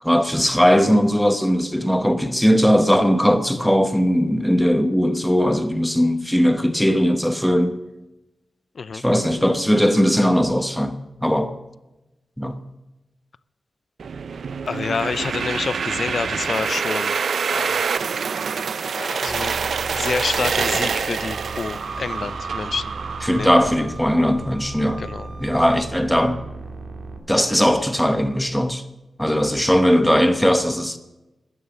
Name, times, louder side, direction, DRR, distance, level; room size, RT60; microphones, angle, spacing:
voice 1, 0.0-7.8 8.9-11.5 12.4-12.6 23.2-25.1 25.4-26.4 27.3-28.8 29.2-31.0, equal, 5° left, 1.0 m, -19 dB
sound 1, 14.0-23.7, right 6 dB, 70° right, 0.5 m, -26 dB
voice 2, 14.6-17.2 17.5-17.8 18.9-22.9 23.3-23.5 25.0-25.3, left 5 dB, 55° left, 0.4 m, -28 dB
sound 2, 19.3-27.2, right 3 dB, 45° right, 2.0 m, -37 dB
Wind instrument woodwind instrument, 21.3-25.8, right 2 dB, 25° right, 0.9 m, -41 dB
14.0 x 10.5 x 6.2 m
wide cardioid pair, 135°, 0 cm